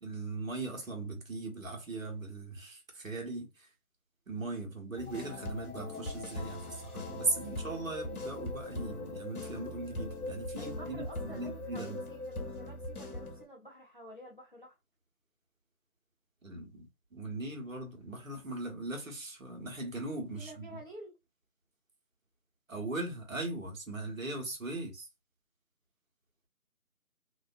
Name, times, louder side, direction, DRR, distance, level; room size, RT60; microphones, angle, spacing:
voice 1, 0.0-3.7 4.3-12.0 16.4-20.8 22.7-25.1, right 2 dB, 60° right, 1.1 m, -39 dB
sound 1, 5.0-13.4, left 2 dB, 80° left, 0.9 m, -40 dB
voice 2, 10.6-14.8 20.4-21.2, right 1 dB, 35° left, 0.6 m, -50 dB
2.5 x 2.2 x 2.4 m
figure-of-eight pair, 165°, 45 cm